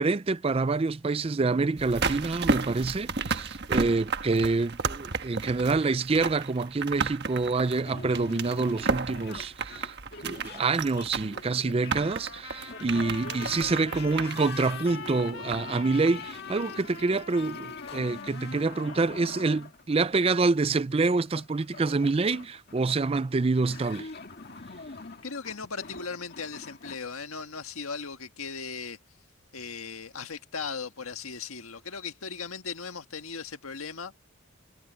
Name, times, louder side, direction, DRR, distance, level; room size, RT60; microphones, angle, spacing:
voice 1, 0.0-9.9 10.2-24.1, right 3 dB, 25° right, 0.4 m, -27 dB
sound 1, 1.8-15.8 16.1-16.2, right 4 dB, 50° right, 1.4 m, -33 dB
sound 2, 7.9-27.0, left 3 dB, 50° left, 1.9 m, -45 dB
Trumpet, 11.9-19.7, left 6 dB, 65° left, 3.0 m, -42 dB
voice 2, 25.2-29.0 29.5-34.1, left 5 dB, 85° left, 1.7 m, -37 dB
head